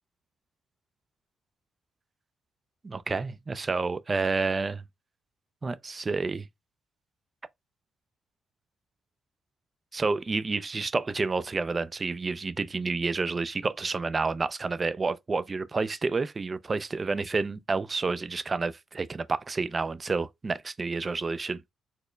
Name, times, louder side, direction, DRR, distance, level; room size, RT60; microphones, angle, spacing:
voice 1, 2.8-4.8 5.6-6.5 9.9-21.6, right 4 dB, 30° right, 0.3 m, -29 dB
4.3 x 2.0 x 3.2 m
cardioid pair, 90°, 0 cm